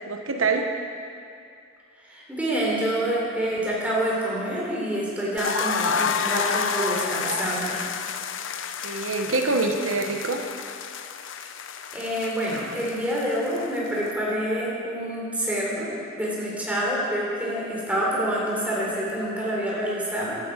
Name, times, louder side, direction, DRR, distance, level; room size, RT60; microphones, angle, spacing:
voice 1, 0.1-0.7 8.8-10.4, right 3 dB, 80° right, 4 dB, 1.0 m, -25 dB
voice 2, 2.1-7.8 11.9-20.4, right 1 dB, 5° right, -6 dB, 3.4 m, -27 dB
sound 1, 5.4-14.1, left 6 dB, 70° left, 0.6 m, -30 dB
15.5 x 12.5 x 4.9 m, 2.4 s
head